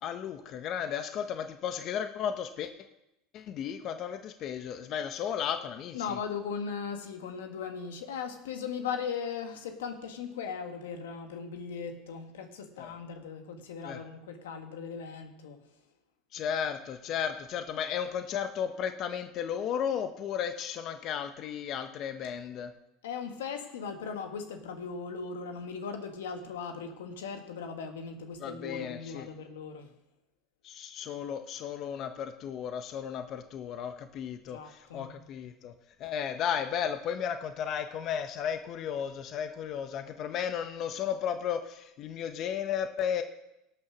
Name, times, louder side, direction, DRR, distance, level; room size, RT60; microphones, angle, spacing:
voice 1, 0.0-2.7 3.3-6.2 12.8-12.9 13.8-14.0 16.3-22.7 28.4-29.3 30.6-35.7 36.0-43.2, left 8 dB, 50° left, 8 dB, 1.0 m, -34 dB
voice 2, 5.9-15.6 23.0-29.9 34.4-35.2, left 6 dB, 90° left, 6 dB, 1.6 m, -38 dB
17.5 x 6.7 x 6.3 m, 0.89 s
supercardioid pair, 105°, 0 cm